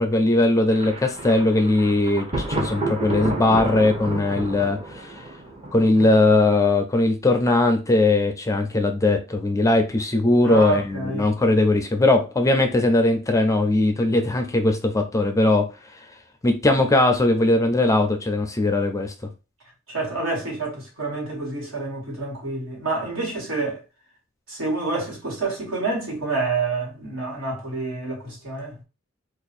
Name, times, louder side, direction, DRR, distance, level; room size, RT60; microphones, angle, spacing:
voice 1, 0.0-5.2 5.7-15.7 16.4-19.1, left 2 dB, 15° left, 0.4 m, -20 dB
Thunder, 0.7-6.5, right 2 dB, 25° right, 0.8 m, -31 dB
voice 2, 10.4-11.2 19.9-23.8 24.5-28.8, right 3 dB, 70° right, 1.8 m, -28 dB
2.6 x 2.4 x 4.1 m
head